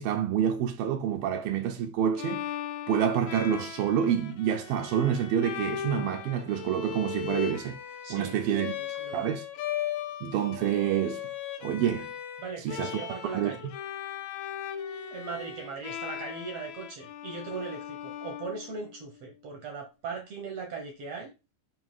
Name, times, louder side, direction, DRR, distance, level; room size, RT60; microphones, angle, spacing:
voice 1, 0.0-2.5 2.9-7.8 8.1-8.7 9.1-9.5 10.2-11.2 11.6-12.1 12.6-13.0 13.3-13.6, right 9 dB, 80° right, 2.5 m, -28 dB
Bowed string instrument, 2.2-19.1, left 10 dB, 90° left, 1.6 m, -38 dB
voice 2, 8.0-9.3 12.4-13.7 15.1-21.3, right 4 dB, 65° right, 1.7 m, -39 dB
7.2 x 2.8 x 5.5 m
omnidirectional pair, 4.2 m